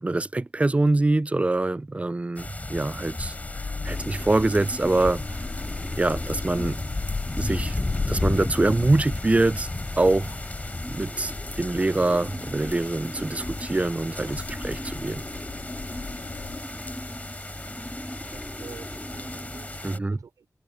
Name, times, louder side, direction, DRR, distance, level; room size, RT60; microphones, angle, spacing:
voice 1, 0.0-3.3 3.8-5.2 6.0-6.8 7.4-7.8 8.1-9.7 10.0-10.4 10.9-15.2 19.8-20.2, right 2 dB, 25° right, 0.4 m, -24 dB
sound 1, 2.4-20.0, left 2 dB, 25° left, 5.4 m, -34 dB
sound 2, 3.2-16.6, left 4 dB, 60° left, 4.3 m, -37 dB
sound 3, 3.8-20.0, equal, ahead, 2.4 m, -40 dB
voice 2, 17.8-20.5, right 6 dB, 85° right, 5.6 m, -48 dB
cardioid pair, 65°, 6 cm